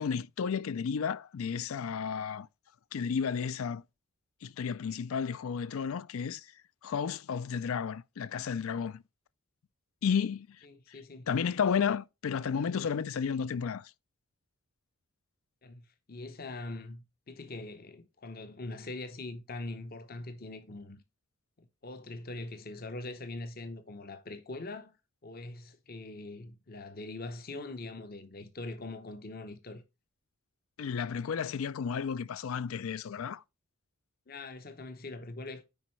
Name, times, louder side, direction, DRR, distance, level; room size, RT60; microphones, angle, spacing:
voice 1, 0.0-2.5 2.9-3.8 4.4-6.5 6.8-9.0 10.0-10.6 11.3-13.9 30.8-33.4, left 6 dB, 75° left, 0.4 m, -32 dB
voice 2, 10.6-11.3 15.6-21.0 21.6-25.0 25.2-29.8 34.3-35.6, left 2 dB, 45° left, 0.8 m, -42 dB
9.8 x 4.5 x 3.1 m
head